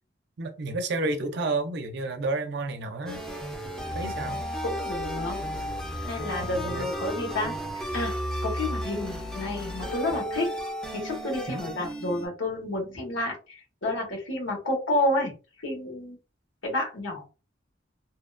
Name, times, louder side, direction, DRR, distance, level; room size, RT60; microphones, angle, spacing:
voice 1, 0.4-3.2 3.9-4.4 6.4-6.9 11.5-11.7, right 2 dB, 60° right, 0.5 m, -31 dB
sound 1, 3.1-12.3, equal, 5° left, 0.4 m, -33 dB
voice 2, 4.6-5.4 6.0-8.1 8.4-10.5 10.9-15.3 15.6-16.2 16.6-17.3, left 1 dB, 90° left, 1.2 m, -30 dB
2.7 x 2.2 x 2.4 m
head